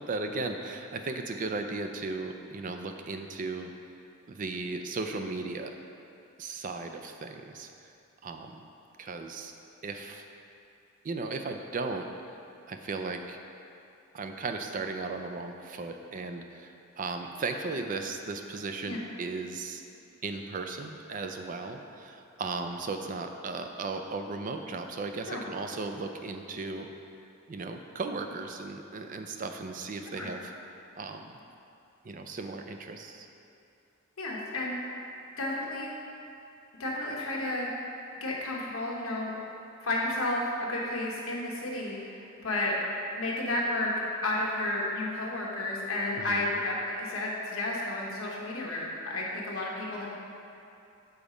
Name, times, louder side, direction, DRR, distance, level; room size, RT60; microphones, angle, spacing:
voice 1, 0.0-3.7 4.3-5.7 6.4-7.7 8.2-8.6 9.0-9.5 9.8-10.2 11.0-12.1 12.7-13.4 14.1-19.8 20.2-26.9 27.5-30.5 31.0-31.4 32.0-33.3 46.2-46.4, right 3 dB, 40° right, 5 dB, 0.4 m, -36 dB
voice 2, 34.2-34.8 35.4-35.9 36.8-37.7 38.2-39.3 39.8-42.7 43.2-43.9 44.2-50.1, left 2 dB, 80° left, -3 dB, 1.2 m, -32 dB
7.0 x 4.1 x 5.0 m, 2.7 s
head